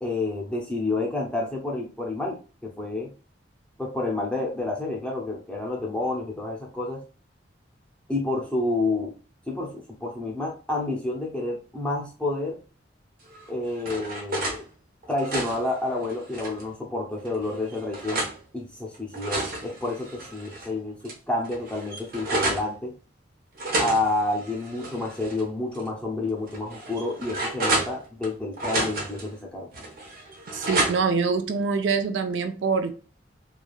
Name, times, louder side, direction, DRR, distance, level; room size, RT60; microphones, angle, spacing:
voice 1, 0.0-3.1 3.8-7.0 8.1-9.1 9.5-12.6 13.5-14.6 15.1-18.3 18.5-22.9 23.8-29.7, left 2 dB, 5° left, -2 dB, 0.5 m, -29 dB
sound 1, 13.3-14.6 15.0-16.7 17.3-18.4 18.9-20.7 21.1-21.2 21.4-22.7 23.6-25.4 25.7-25.9 26.5-28.3 28.6-29.3 29.7-31.2, right 2 dB, 50° right, 0.8 m, -30 dB
voice 2, 30.5-32.9, right 5 dB, 75° right, 7 dB, 0.4 m, -25 dB
3.1 x 2.3 x 2.3 m, 0.36 s
head